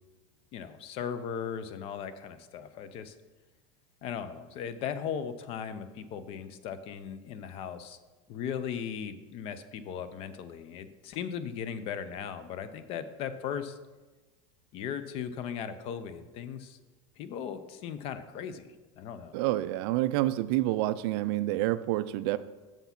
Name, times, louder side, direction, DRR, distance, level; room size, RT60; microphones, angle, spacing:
voice 1, 0.5-3.1 4.0-8.0 8.3-13.8 14.7-16.8 17.2-19.4, left 8 dB, 35° left, 12 dB, 0.5 m, -37 dB
voice 2, 19.3-22.4, right 16 dB, 50° right, 14 dB, 0.4 m, -28 dB
7.0 x 5.8 x 5.8 m, 1.2 s
supercardioid pair, 155°, 16 cm